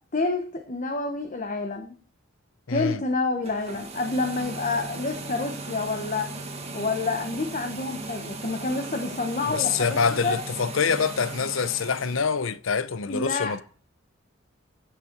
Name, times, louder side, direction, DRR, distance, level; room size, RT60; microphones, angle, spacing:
voice 1, 0.1-2.0 2.7-6.3 6.7-10.4 13.1-13.5, left 3 dB, 40° left, 1.2 m, -28 dB
voice 2, 2.7-3.0 9.5-13.6, left 6 dB, 80° left, 0.7 m, -25 dB
sound 1, 3.4-12.3, right 2 dB, 30° right, 1.9 m, -37 dB
15.0 x 6.7 x 4.6 m
head